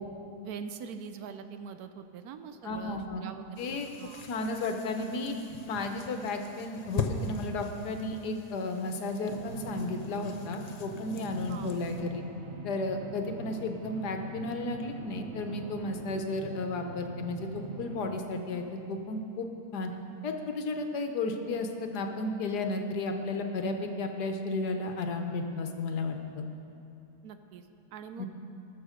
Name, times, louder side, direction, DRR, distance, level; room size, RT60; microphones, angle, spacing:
voice 1, 0.4-4.2 11.5-11.7 27.2-28.3, right 6 dB, 70° right, 9 dB, 1.1 m, -43 dB
voice 2, 2.6-3.2 3.6-5.4 5.7-12.2 12.6-19.5 19.7-19.9 20.2-26.5 28.2-28.3, left 2 dB, 80° left, 5 dB, 1.5 m, -33 dB
sound 1, 3.5-12.0, left 4 dB, 50° left, 0.4 m, -41 dB
sound 2, 9.3-18.1, right 2 dB, 50° right, 1.2 m, -44 dB
20.0 x 6.8 x 5.0 m, 2.7 s
omnidirectional pair, 1.7 m